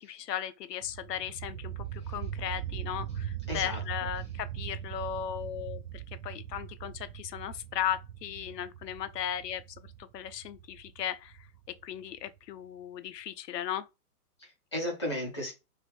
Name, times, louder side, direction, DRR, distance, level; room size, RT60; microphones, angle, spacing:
voice 1, 0.0-9.6 10.1-11.3 11.8-13.9, left 10 dB, 90° left, 0.6 m, -36 dB
sound 1, 0.8-12.4, right 10 dB, 80° right, 0.6 m, -40 dB
voice 2, 3.5-3.8 14.4-15.5, left 1 dB, 20° left, 0.5 m, -35 dB
3.2 x 2.4 x 3.2 m
hypercardioid pair, 170°, 47 cm